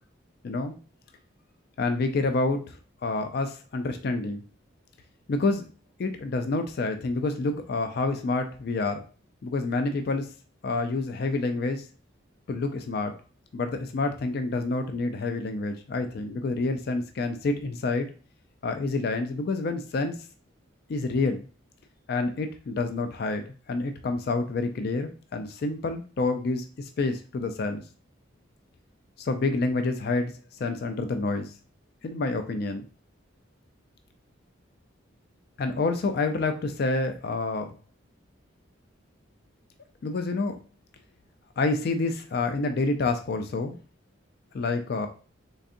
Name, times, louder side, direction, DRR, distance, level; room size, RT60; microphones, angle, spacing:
voice 1, 0.4-0.7 1.8-2.8 3.0-4.4 5.3-5.7 6.0-9.0 9.4-10.3 10.6-11.8 12.5-13.1 13.5-18.1 18.6-20.2 20.9-21.4 22.1-27.8 29.2-30.3 30.6-31.5 32.0-32.8 35.6-37.7 40.0-40.6 41.6-43.8 44.5-45.1, left 3 dB, 50° left, 7 dB, 0.3 m, -28 dB
3.9 x 3.4 x 2.6 m, 0.37 s
head